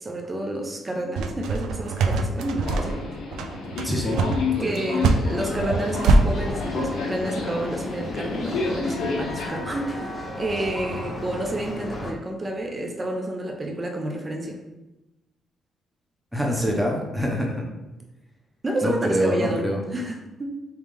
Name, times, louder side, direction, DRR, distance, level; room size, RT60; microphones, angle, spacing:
voice 1, 0.0-3.0 4.6-14.6 18.6-20.7, right 1 dB, 25° right, 2 dB, 0.6 m, -30 dB
sound 1, 1.2-6.2, right 3 dB, 85° right, 0.3 m, -22 dB
Subway metro underground, 2.6-9.5, left 4 dB, 80° left, 0.7 m, -30 dB
voice 2, 3.8-4.2 4.5-4.7 16.3-17.7 18.8-19.8, equal, 5° right, -1 dB, 0.9 m, -25 dB
sound 2, 5.3-12.1, left 2 dB, 35° left, 0.7 m, -34 dB
3.5 x 3.1 x 3.4 m, 1.0 s
cardioid pair, 90°, 0 cm